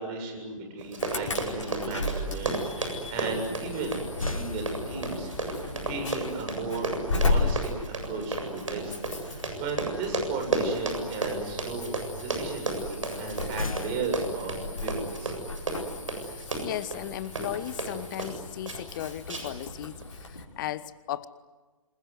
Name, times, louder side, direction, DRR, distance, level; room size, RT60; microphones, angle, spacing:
voice 1, 0.0-6.9 7.1-8.9 9.2-12.0 12.2-15.3, right 3 dB, 30° right, 4 dB, 7.7 m, -35 dB
Run, 0.8-18.4 18.7-19.0 19.3-19.7 20.0-20.1, right 3 dB, 70° right, 7.6 m, -33 dB
Insect / Alarm, 1.0-20.4, left 3 dB, 65° left, 5.6 m, -35 dB
sound 1, 3.7-5.4 8.1-8.4 8.8-9.1 13.1-14.8, left 3 dB, 80° left, 0.9 m, -38 dB
voice 2, 16.2-21.3, left 12 dB, 35° left, 17 dB, 1.1 m, -36 dB
27.5 x 22.0 x 9.7 m, 1.3 s
figure-of-eight pair, 125°, 17 cm